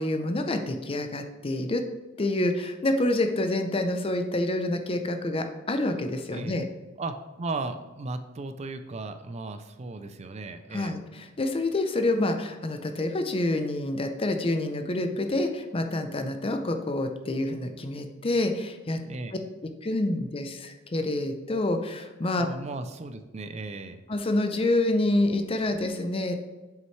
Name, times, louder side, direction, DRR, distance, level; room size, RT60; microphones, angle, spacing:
voice 1, 0.0-1.8 2.2-6.6 10.7-19.0 19.6-22.5 24.1-26.4, left 2 dB, 30° left, 6 dB, 0.6 m, -27 dB
voice 2, 7.0-11.0 19.0-19.3 22.4-24.0, right 3 dB, 35° right, 9 dB, 0.4 m, -36 dB
7.6 x 5.6 x 3.2 m, 1.2 s
head